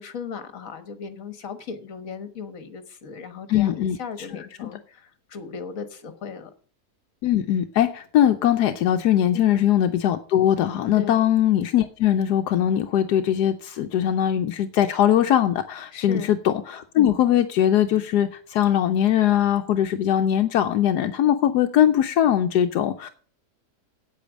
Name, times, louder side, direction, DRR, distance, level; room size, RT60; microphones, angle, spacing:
voice 1, 0.0-6.5 9.3-9.6 10.9-11.2 15.9-16.3, left 6 dB, 55° left, 9 dB, 1.6 m, -37 dB
voice 2, 3.5-4.7 7.2-23.1, left 10 dB, 80° left, 7 dB, 1.2 m, -21 dB
8.6 x 8.4 x 6.2 m, 0.44 s
omnidirectional pair, 1.7 m